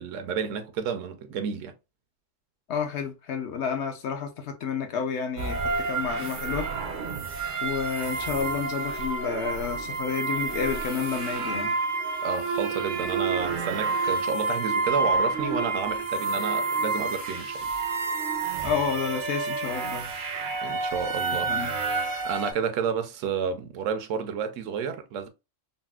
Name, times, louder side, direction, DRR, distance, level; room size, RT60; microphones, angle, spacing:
voice 1, 0.0-1.7 12.2-17.7 20.6-21.6 22.2-25.3, right 6 dB, 75° right, 0.9 m, -31 dB
voice 2, 2.7-6.7 7.6-11.8 18.6-20.1 21.5-21.7, left 6 dB, 65° left, 0.9 m, -30 dB
sound 1, 5.4-22.5, right 4 dB, 55° right, 0.5 m, -29 dB
4.0 x 2.0 x 2.3 m
omnidirectional pair, 1.3 m